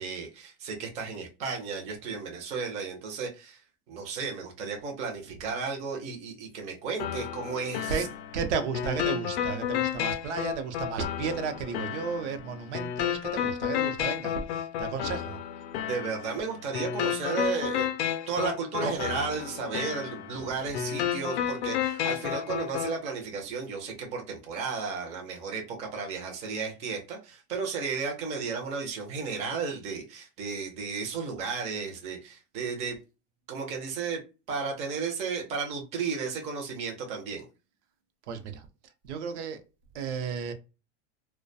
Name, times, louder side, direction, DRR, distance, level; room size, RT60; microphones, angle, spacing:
voice 1, 0.0-3.6 3.9-7.9 15.8-17.9 18.3-33.0 33.5-34.2 34.5-37.5, right 5 dB, 20° right, 0.4 m, -34 dB
sound 1, 7.0-23.0, left 10 dB, 70° left, 0.5 m, -32 dB
voice 2, 7.9-15.4 18.8-19.0 20.3-20.5 38.3-38.7 39.0-39.6 39.9-40.5, right 6 dB, 85° right, 0.7 m, -33 dB
2.3 x 2.2 x 2.6 m
supercardioid pair, 160°, 34 cm